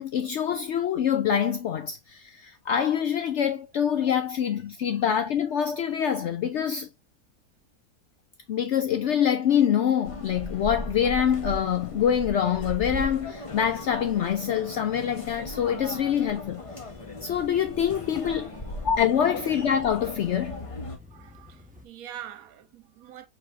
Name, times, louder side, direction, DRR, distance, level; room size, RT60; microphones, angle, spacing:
voice 1, 0.0-6.9 8.5-16.6 17.2-18.5 18.8-20.6, left 8 dB, 70° left, 0.7 m, -25 dB
sound 1, 10.0-21.0, left 1 dB, 25° left, 0.8 m, -37 dB
sound 2, 16.5-21.9, left 2 dB, 10° right, 0.6 m, -51 dB
voice 2, 21.1-23.3, right 11 dB, 75° right, 1.2 m, -45 dB
4.8 x 4.1 x 2.4 m
omnidirectional pair, 1.6 m